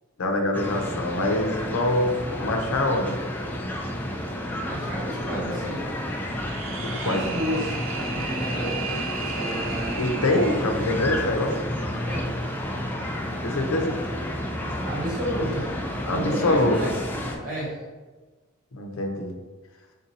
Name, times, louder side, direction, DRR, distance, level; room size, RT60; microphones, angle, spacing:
voice 1, 0.2-3.1 6.8-7.2 10.0-11.5 13.4-14.0 16.1-16.9 18.7-19.3, left 1 dB, 85° left, 4 dB, 0.6 m, -24 dB
sound 1, 0.5-17.4, left 1 dB, 10° left, 0.3 m, -31 dB
voice 2, 4.4-5.9 7.0-10.0 10.3-10.4 10.7-10.9 12.0-12.3 14.6-15.7 16.0-17.8, equal, 40° right, -6 dB, 1.4 m, -32 dB
sound 2, 6.2-10.7, right 5 dB, 65° right, 0.4 m, -35 dB
3.6 x 2.7 x 4.0 m, 1.3 s
head